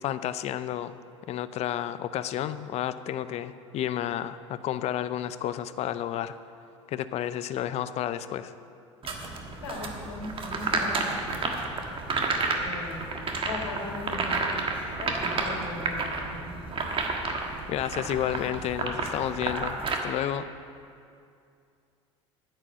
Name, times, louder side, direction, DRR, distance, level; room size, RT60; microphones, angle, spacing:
voice 1, 0.0-0.9 1.3-6.4 6.9-8.5 17.7-19.7 20.0-20.5, left 11 dB, 45° left, 13 dB, 0.5 m, -31 dB
sound 1, 9.0-19.9, right 3 dB, 35° right, 1.4 m, -31 dB
voice 2, 9.6-11.1 12.5-13.1 13.4-14.5 15.0-16.5, left 2 dB, 80° left, 0 dB, 2.1 m, -38 dB
9.7 x 7.7 x 7.6 m, 2.4 s
hypercardioid pair, 75°, 16 cm